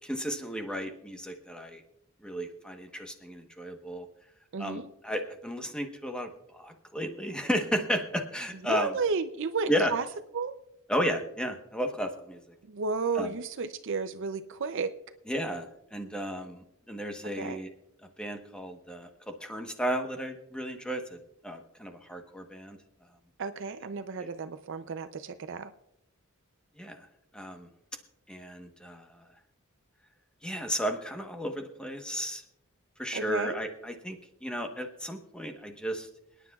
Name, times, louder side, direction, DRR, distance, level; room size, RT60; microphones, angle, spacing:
voice 1, 0.0-1.8 2.2-4.1 4.6-6.3 6.5-9.0 9.7-9.9 10.9-12.4 13.1-13.3 15.3-15.7 15.9-17.7 18.2-19.1 19.4-21.2 21.4-22.8 26.8-27.1 27.3-27.7 28.3-29.1 30.4-32.4 33.0-34.2 34.4-36.1, equal, 5° left, 4 dB, 1.1 m, -33 dB
voice 2, 4.5-4.9 8.7-10.1 10.3-10.5 12.7-14.9 17.2-17.6 23.4-25.7 33.1-33.7, right 4 dB, 60° right, 10 dB, 0.5 m, -32 dB
28.0 x 10.0 x 2.3 m, 0.81 s
head